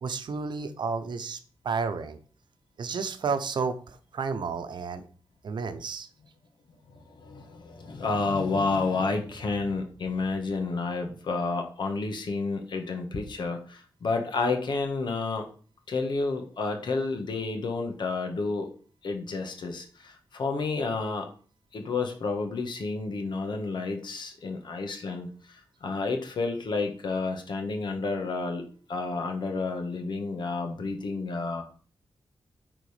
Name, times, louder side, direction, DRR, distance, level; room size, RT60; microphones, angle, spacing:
voice 1, 0.0-1.4 1.6-2.2 2.8-5.1 5.4-6.1, right 5 dB, 65° right, 9 dB, 0.8 m, -31 dB
voice 2, 6.9-15.5 15.9-18.7 19.0-21.3 21.7-28.6 28.9-31.6, left 3 dB, 65° left, 5 dB, 1.5 m, -30 dB
9.2 x 3.9 x 5.1 m, 0.42 s
wide cardioid pair, 140°, 8 cm